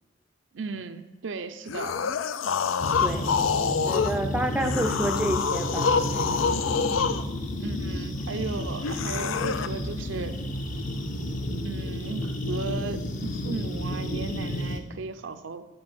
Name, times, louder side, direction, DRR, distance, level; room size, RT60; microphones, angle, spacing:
voice 1, 0.5-2.0 7.6-10.4 11.6-15.7, right 4 dB, 70° right, 9 dB, 0.5 m, -36 dB
sound 1, 1.7-4.2 4.6-7.2 8.8-9.7, left 6 dB, 90° left, 0.4 m, -26 dB
sound 2, 2.8-14.8, left 1 dB, 40° left, 0.8 m, -31 dB
voice 2, 3.0-3.3 3.6-6.2, right 1 dB, 5° right, 5 dB, 0.4 m, -29 dB
7.7 x 4.8 x 6.1 m, 1.3 s
head